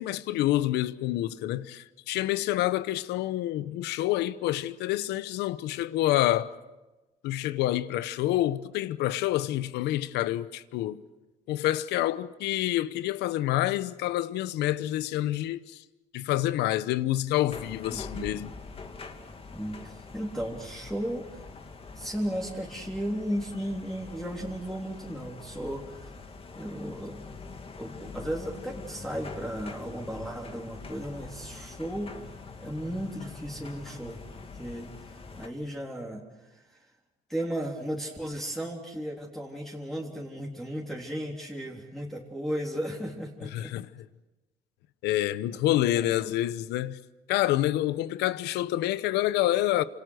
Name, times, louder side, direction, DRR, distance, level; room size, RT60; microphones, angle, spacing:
voice 1, 0.0-6.6 7.2-11.0 11.5-15.8 16.1-18.5 43.4-43.9 45.0-47.0 47.3-49.8, left 14 dB, 85° left, 1.0 m, -27 dB
sound 1, 17.5-35.5, left 4 dB, 35° left, 2.7 m, -44 dB
voice 2, 17.9-18.3 19.5-21.4 22.0-26.2 26.5-27.3 27.8-34.2 34.5-34.9 35.4-36.9 37.3-43.7 45.7-46.2, equal, ahead, 3.5 m, -35 dB
29.5 x 27.0 x 6.4 m
cardioid pair, 110°, 17 cm